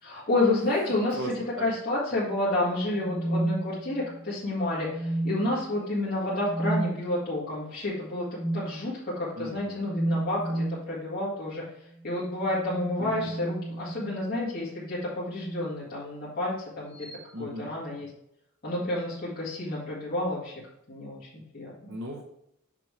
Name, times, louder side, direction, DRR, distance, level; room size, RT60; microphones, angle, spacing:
voice 1, 0.0-8.3 8.5-11.6 12.0-17.1 17.4-18.1 18.6-20.5 20.9-21.9, left 2 dB, 45° left, -8 dB, 2.1 m, -30 dB
sound 1, 2.9-4.2 4.8-5.6 6.4-6.9 8.3-8.7 9.8-10.9 12.4-14.2 15.3-15.7 17.0-17.2, right 1 dB, 25° left, 1.1 m, -32 dB
voice 2, 9.4-9.8 13.0-13.3 17.3-17.7 21.9-22.2, equal, 60° right, -2 dB, 0.9 m, -37 dB
6.1 x 6.0 x 3.3 m, 0.78 s
head